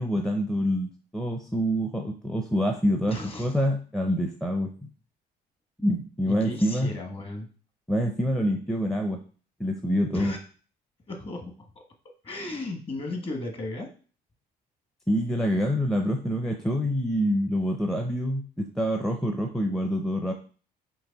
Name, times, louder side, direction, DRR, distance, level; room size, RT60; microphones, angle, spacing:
voice 1, 0.0-4.9 5.8-6.9 7.9-9.2 9.6-10.3 15.1-20.3, equal, 5° left, 3 dB, 0.5 m, -26 dB
voice 2, 3.1-3.6 6.2-7.5 10.1-10.4 11.1-11.8 12.2-13.9, left 2 dB, 35° left, 3 dB, 1.2 m, -35 dB
4.6 x 2.9 x 4.0 m, 0.39 s
cardioid pair, 110°, 17 cm